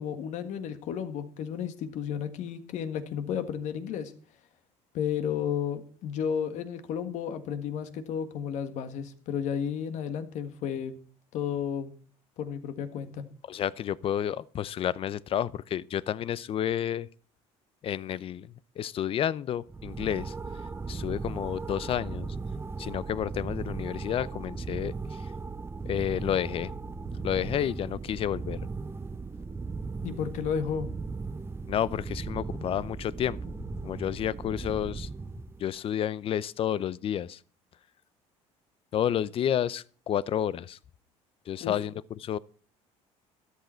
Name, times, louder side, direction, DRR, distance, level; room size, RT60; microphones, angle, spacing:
voice 1, 0.0-4.1 4.9-11.0 11.3-11.9 12.4-13.2 30.0-30.9 41.6-41.7, left 8 dB, 65° left, 1.7 m, -32 dB
voice 2, 13.5-17.1 17.8-20.3 20.9-22.4 22.8-25.2 25.9-26.7 27.2-28.6 31.7-33.4 33.8-35.1 35.6-37.4 38.9-40.8 41.5-41.9 42.2-42.4, left 10 dB, 45° left, 0.6 m, -30 dB
sound 1, 19.7-35.7, right 4 dB, 20° right, 0.8 m, -37 dB
13.0 x 12.0 x 4.5 m
supercardioid pair, 95°, 13 cm